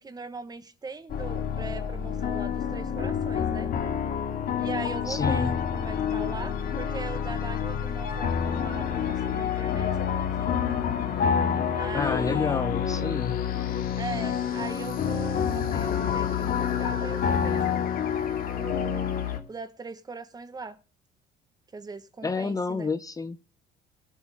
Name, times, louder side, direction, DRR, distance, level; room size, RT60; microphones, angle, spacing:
voice 1, 0.0-3.7 4.6-10.5 11.7-12.7 14.0-17.8 18.5-19.1 19.5-20.8 21.7-22.9, right 4 dB, 25° right, 1.3 m, -40 dB
sound 1, 1.1-19.4, left 8 dB, 60° left, 2.3 m, -28 dB
voice 2, 5.1-5.6 11.9-13.4 22.2-23.4, left 4 dB, 20° left, 0.7 m, -29 dB
21.5 x 8.4 x 3.6 m
cardioid pair, 110°, 17 cm